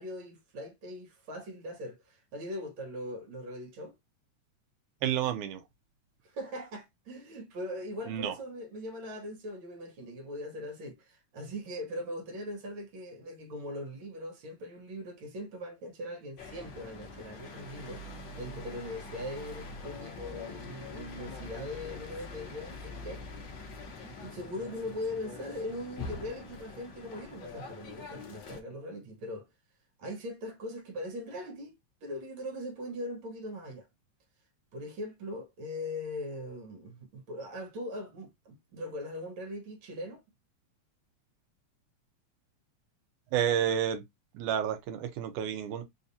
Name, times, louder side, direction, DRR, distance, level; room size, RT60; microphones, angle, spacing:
voice 1, 0.0-4.0 6.2-23.3 24.0-29.5 30.0-33.9 34.7-40.2, left 1 dB, 60° right, 1.3 m, -40 dB
voice 2, 5.0-5.6 8.1-8.3 43.3-44.0 44.3-45.8, right 9 dB, 80° right, 2.2 m, -30 dB
sound 1, 16.4-28.6, left 3 dB, 90° left, 1.0 m, -44 dB
5.0 x 2.6 x 2.6 m
omnidirectional pair, 3.5 m